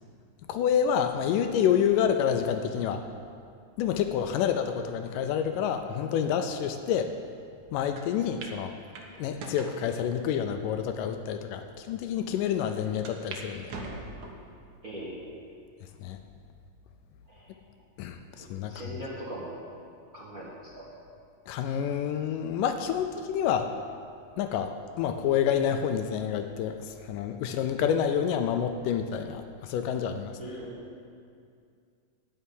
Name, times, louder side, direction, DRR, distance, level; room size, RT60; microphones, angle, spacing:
voice 1, 0.5-3.0 3.8-7.1 7.7-8.7 9.2-13.7 16.0-16.2 18.0-18.7 21.5-23.7 24.4-30.3, left 8 dB, 80° left, 7 dB, 2.1 m, -28 dB
sound 1, 8.0-8.1 8.4-8.6 8.9-9.8 10.5-10.6 11.3-11.4 11.7-11.8 13.0-13.4 13.7-14.5 15.0-15.5 16.0-16.1 17.2-17.7, right 3 dB, 65° right, 2.3 m, -41 dB
voice 2, 14.8-15.3 17.3-17.5 18.4-19.6 20.1-20.9 30.4-30.8, right 1 dB, 40° right, -7 dB, 1.3 m, -40 dB
12.5 x 5.7 x 9.3 m, 2.3 s
omnidirectional pair, 4.0 m